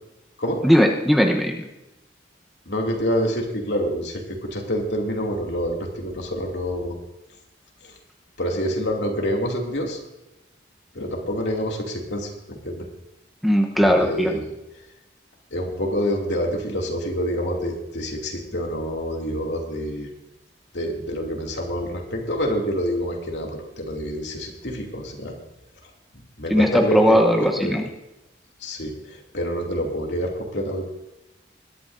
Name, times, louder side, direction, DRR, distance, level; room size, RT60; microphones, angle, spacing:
voice 1, 0.6-1.7 13.4-14.3 26.5-27.9, equal, ahead, 1 dB, 0.9 m, -18 dB
voice 2, 2.7-7.0 7.8-7.9 8.4-10.0 10.9-12.9 13.8-14.4 15.5-20.1 20.7-25.3 26.1-27.7 28.6-30.9, equal, 75° left, 0 dB, 2.5 m, -27 dB
21.0 x 12.0 x 2.6 m, 0.96 s
head